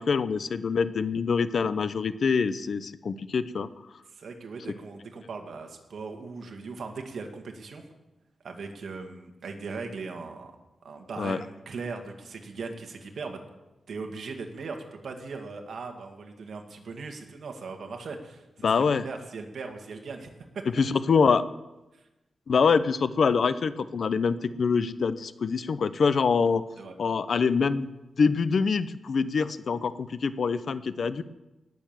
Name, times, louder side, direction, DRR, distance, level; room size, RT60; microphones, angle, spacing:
voice 1, 0.0-3.7 11.2-11.4 18.6-19.1 20.8-21.4 22.5-26.6 27.0-27.9 28.2-31.2, left 5 dB, 60° left, 14 dB, 0.7 m, -25 dB
voice 2, 4.1-7.9 8.4-10.5 10.8-13.4 13.9-20.6 21.9-22.0 26.8-26.9, right 4 dB, 70° right, 4 dB, 2.0 m, -39 dB
19.0 x 7.0 x 7.5 m, 1.0 s
wide cardioid pair, 130°, 0 cm